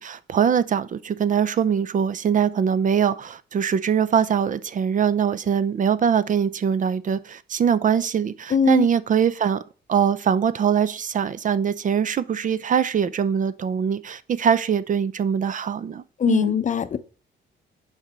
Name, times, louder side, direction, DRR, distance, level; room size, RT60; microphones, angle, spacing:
voice 1, 0.0-9.6 9.9-16.6, right 7 dB, 40° right, 0.4 m, -22 dB
voice 2, 8.5-8.9 16.2-17.0, left 7 dB, 40° left, 0.6 m, -21 dB
5.8 x 4.0 x 5.5 m
cardioid pair, 90°, 20 cm